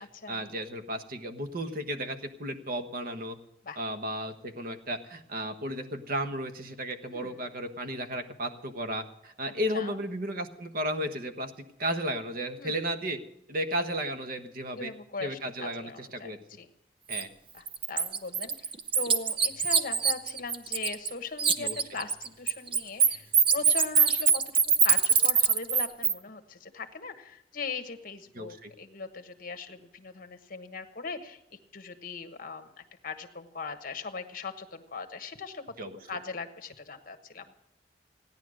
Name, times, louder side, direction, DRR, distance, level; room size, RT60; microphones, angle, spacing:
voice 1, 0.3-3.4 3.8-11.5 11.8-13.2 13.5-14.9 15.2-16.4 17.1-17.3 21.6-21.8 28.3-28.7 35.8-36.0, equal, 55° right, 8 dB, 1.3 m, -34 dB
voice 2, 7.1-7.4 9.7-10.0 12.6-12.8 14.7-16.7 17.5-18.5 18.9-23.3 23.5-24.4 24.8-35.6 36.1-37.5, left 4 dB, 50° left, 9 dB, 1.2 m, -39 dB
Bird, 17.1-17.2 17.7-21.1 21.4-26.1, right 6 dB, 30° right, 0.7 m, -23 dB
16.0 x 10.5 x 6.4 m, 0.81 s
head